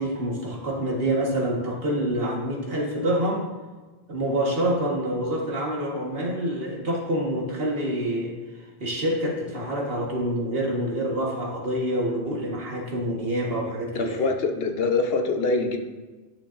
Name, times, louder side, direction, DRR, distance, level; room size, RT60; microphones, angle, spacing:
voice 1, 0.0-3.5 4.1-8.4 8.8-14.2, right 1 dB, 65° right, -2 dB, 1.7 m, -27 dB
voice 2, 13.9-15.8, left 3 dB, 70° left, 4 dB, 1.0 m, -24 dB
9.9 x 7.5 x 2.5 m, 1.2 s
omnidirectional pair, 1.1 m